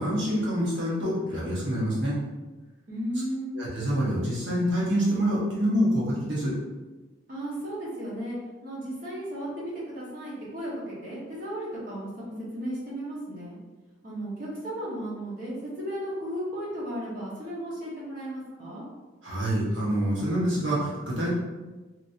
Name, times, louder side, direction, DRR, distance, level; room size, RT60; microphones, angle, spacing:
voice 1, 0.0-2.2 3.5-6.5 19.2-21.3, equal, 70° right, -6 dB, 1.1 m, -26 dB
voice 2, 2.9-3.5 7.3-13.6 14.0-18.8, right 1 dB, 45° right, -8 dB, 0.9 m, -35 dB
2.9 x 2.6 x 2.7 m, 1.2 s
head